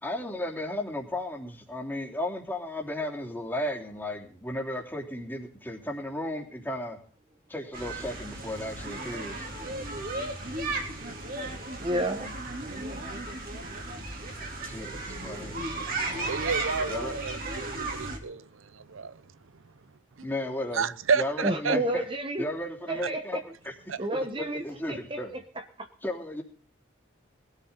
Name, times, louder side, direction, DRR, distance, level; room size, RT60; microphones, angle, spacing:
voice 1, 0.0-7.0 7.5-9.4 14.6-15.5 16.9-17.1 20.2-20.9 21.2-22.0 22.4-23.4 24.1-25.3 26.0-26.4, left 1 dB, 10° left, 3.2 m, -34 dB
sound 1, 7.7-18.2, right 2 dB, 45° right, 3.4 m, -35 dB
voice 2, 11.8-12.4 21.4-22.4 22.9-23.4 24.0-24.6 24.9-25.2 25.5-25.9, right 1 dB, 25° right, 1.2 m, -30 dB
voice 3, 16.1-19.2 20.2-20.3 20.7-21.8 23.9-24.0, right 5 dB, 85° right, 0.7 m, -31 dB
21.0 x 13.5 x 4.1 m
head